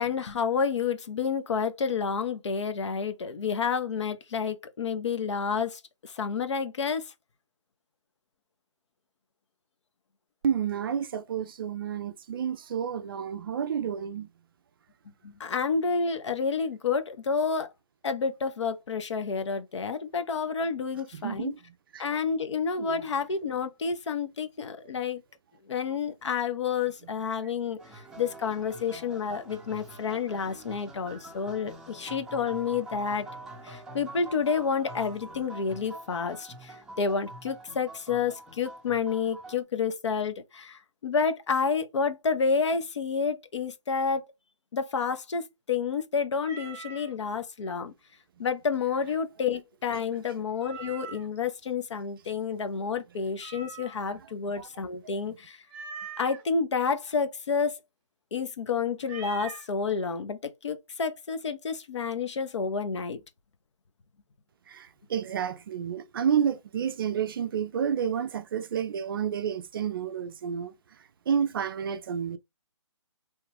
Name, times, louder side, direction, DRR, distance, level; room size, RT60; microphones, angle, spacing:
voice 1, 0.0-7.1 15.2-17.7 18.0-21.5 22.0-25.2 25.7-27.8 28.2-33.3 33.6-44.2 44.7-47.9 48.4-55.6 56.2-57.8 58.3-63.2, left 5 dB, 65° left, 0.8 m, -29 dB
voice 2, 10.4-14.3 21.2-21.6 21.9-22.0 22.8-23.0 54.6-54.7 55.0-55.2 64.7-70.7 71.3-72.4, right 8 dB, 45° right, 0.4 m, -30 dB
sound 1, 27.8-39.6, right 2 dB, 5° right, 0.6 m, -45 dB
Meow, 46.4-47.1 50.6-51.4 53.4-54.2 55.7-56.4 59.0-59.7, right 5 dB, 25° right, 1.0 m, -42 dB
3.0 x 2.4 x 3.2 m
hypercardioid pair, 150°, 16 cm